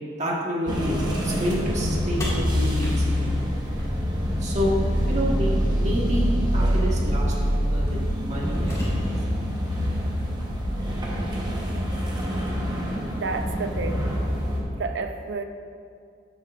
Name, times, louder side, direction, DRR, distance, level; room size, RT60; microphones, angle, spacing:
voice 1, 0.2-3.4 4.4-4.8 5.1-9.1, equal, 40° right, -4 dB, 1.5 m, -29 dB
sound 1, 0.7-14.6, equal, 20° right, 1.1 m, -25 dB
sound 2, 2.2-4.4 6.2-6.3 7.2-7.4 7.9-9.4, equal, 20° left, 2.1 m, -33 dB
voice 2, 13.1-14.1 14.7-15.4, right 4 dB, 65° right, 6 dB, 0.6 m, -30 dB
12.0 x 7.6 x 2.5 m, 2.2 s
head